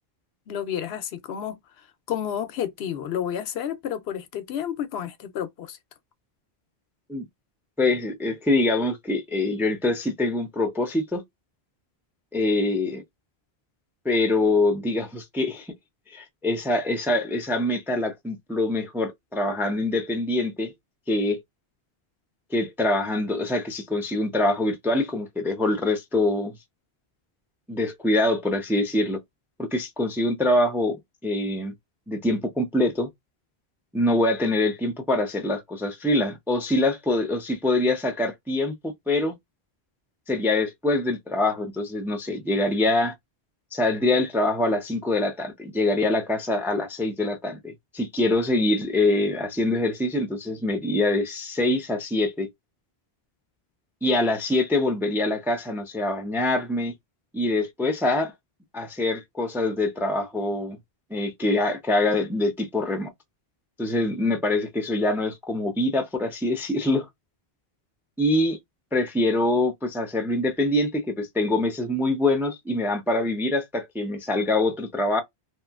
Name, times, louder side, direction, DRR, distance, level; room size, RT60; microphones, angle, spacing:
voice 1, 0.5-5.8, left 9 dB, 85° left, 0.8 m, -31 dB
voice 2, 7.8-11.2 12.3-13.0 14.0-15.7 16.1-20.7 21.1-21.4 22.5-26.5 27.7-29.2 29.6-31.7 32.1-33.1 33.9-39.3 40.3-43.1 43.7-52.5 54.0-56.9 57.3-58.3 58.7-60.8 61.1-63.1 63.8-67.1 68.2-68.6 68.9-75.2, left 2 dB, 5° right, 0.3 m, -24 dB
2.9 x 2.6 x 2.3 m
omnidirectional pair, 1.0 m